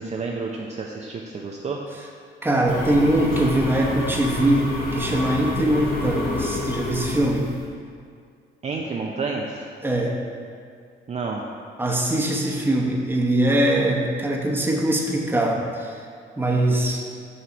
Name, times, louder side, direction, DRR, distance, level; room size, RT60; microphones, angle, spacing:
voice 1, 0.0-1.8 8.6-9.6 11.1-11.4, right 4 dB, 35° right, -1 dB, 0.5 m, -30 dB
voice 2, 2.4-7.5 9.8-10.1 11.8-16.0 16.4-17.0, right 1 dB, 10° right, -1 dB, 1.0 m, -22 dB
sound 1, 2.7-7.7, left 2 dB, 50° left, 1.4 m, -29 dB
6.9 x 3.1 x 6.0 m, 2.2 s
cardioid pair, 90°, 20 cm